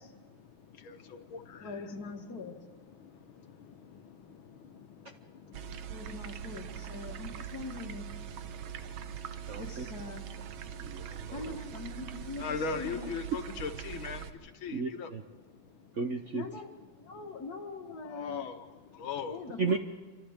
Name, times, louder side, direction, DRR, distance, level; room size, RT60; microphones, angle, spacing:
voice 1, 0.3-1.8 2.8-7.7 8.2-9.6 10.1-11.3 12.4-15.1 15.5-16.0 17.1-17.4 18.0-19.5, left 5 dB, 80° left, 8 dB, 1.9 m, -42 dB
voice 2, 1.6-2.6 5.9-8.1 9.6-10.2 11.3-13.1 16.3-16.7 17.0-18.5 19.3-19.6, left 3 dB, 50° left, 4 dB, 2.1 m, -42 dB
sound 1, 5.5-14.3, right 9 dB, 80° right, 1.7 m, -42 dB
voice 3, 9.5-9.9 10.8-11.6 14.7-15.2 16.0-16.4 19.6-19.8, right 4 dB, 55° right, 5 dB, 0.8 m, -34 dB
28.0 x 26.0 x 3.6 m, 1.4 s
omnidirectional pair, 2.2 m